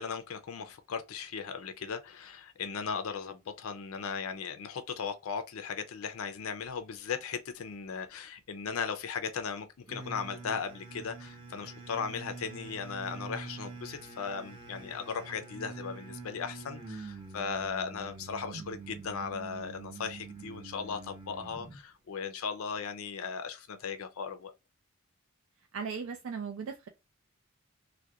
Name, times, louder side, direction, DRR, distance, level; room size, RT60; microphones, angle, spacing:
voice 1, 0.0-24.5, left 6 dB, 70° left, 0.4 m, -37 dB
sound 1, 9.9-21.8, right 3 dB, 25° right, 0.7 m, -45 dB
voice 2, 25.7-26.9, right 5 dB, 65° right, 0.4 m, -37 dB
2.3 x 2.1 x 2.7 m
head